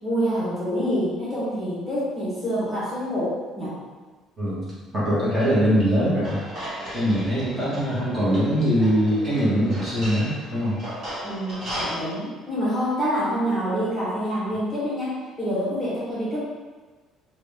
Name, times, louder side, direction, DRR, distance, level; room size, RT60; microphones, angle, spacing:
voice 1, 0.0-3.7 11.2-16.4, equal, 10° left, -10 dB, 1.2 m, -26 dB
voice 2, 4.4-4.7 4.9-6.4 6.9-11.1, equal, 20° right, -10 dB, 1.3 m, -22 dB
sound 1, 6.2-12.0, equal, 35° right, 1.5 m, -36 dB
3.6 x 2.4 x 3.5 m, 1.3 s
cardioid pair, 160°, 0 cm